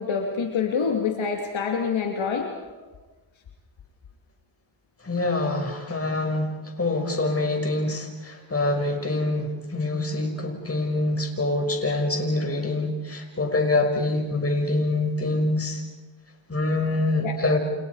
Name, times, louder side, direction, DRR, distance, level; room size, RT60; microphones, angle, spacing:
voice 1, 0.0-2.8 17.2-17.6, left 6 dB, 70° left, 2 dB, 2.8 m, -27 dB
voice 2, 5.0-6.5 6.8-15.8 16.5-17.6, left 2 dB, 30° left, 3 dB, 6.0 m, -25 dB
29.5 x 28.5 x 4.9 m, 1.2 s
cardioid pair, 75°, 49 cm